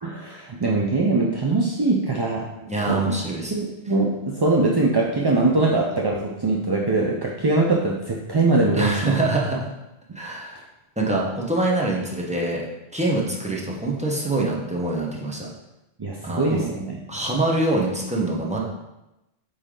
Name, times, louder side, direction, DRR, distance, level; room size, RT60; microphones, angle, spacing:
voice 1, 0.0-3.1 3.5-9.1 16.0-17.0, right 2 dB, 35° right, -2 dB, 0.4 m, -22 dB
voice 2, 2.7-3.5 8.7-9.7 10.1-10.6 11.0-12.6 12.9-15.5 16.2-16.7 17.1-18.6, right 2 dB, 5° right, -3 dB, 0.9 m, -24 dB
8.2 x 3.4 x 3.8 m, 0.96 s
omnidirectional pair, 1.2 m